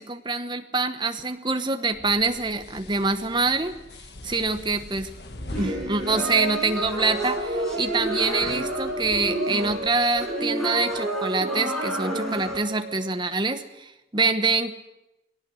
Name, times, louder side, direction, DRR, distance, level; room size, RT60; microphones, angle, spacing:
voice 1, 0.0-3.7 4.2-5.1 5.6-14.7, right 3 dB, 25° right, 8 dB, 1.1 m, -25 dB
sound 1, 1.9-9.3, left 1 dB, 65° left, 1.6 m, -42 dB
Musical instrument, 5.3-13.4, right 1 dB, 55° right, 1.1 m, -35 dB
sound 2, 5.5-12.6, right 1 dB, ahead, 5.3 m, -30 dB
19.5 x 18.0 x 7.8 m, 0.94 s
head